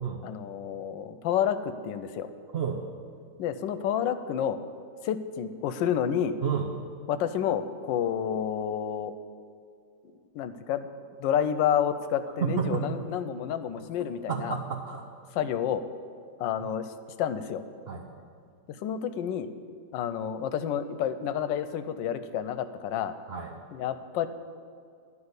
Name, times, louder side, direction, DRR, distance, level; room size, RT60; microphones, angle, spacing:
voice 1, 0.2-2.3 3.4-4.6 5.0-6.4 7.1-9.1 10.3-10.9 11.2-14.6 15.3-15.8 16.4-16.9 17.2-17.6 18.7-19.5 19.9-23.1 23.7-24.3, left 9 dB, 80° left, 12 dB, 1.3 m, -29 dB
voice 2, 12.4-13.0 14.3-15.0 17.9-18.2 23.3-23.6, right 7 dB, 70° right, 1 dB, 0.5 m, -30 dB
12.0 x 5.4 x 8.0 m, 2.2 s
omnidirectional pair, 2.0 m